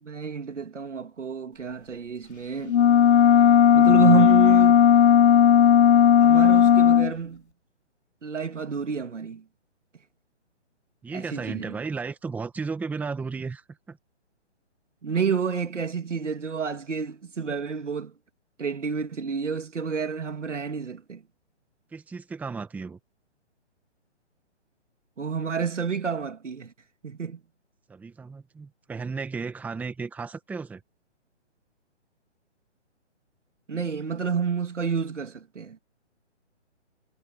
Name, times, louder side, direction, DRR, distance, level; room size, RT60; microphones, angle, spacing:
voice 1, 0.0-2.8 3.7-4.9 6.2-7.4 8.2-9.4 11.1-11.7 15.0-18.1 18.6-21.2 25.2-26.7 27.0-27.4 33.7-35.8, right 6 dB, 85° right, 3.2 m, -29 dB
sound 1, 2.7-7.1, left 9 dB, 65° left, 0.9 m, -16 dB
voice 2, 11.0-14.0 21.9-23.0 27.9-30.8, right 4 dB, 5° right, 1.5 m, -34 dB
hypercardioid pair, 155°, 35 cm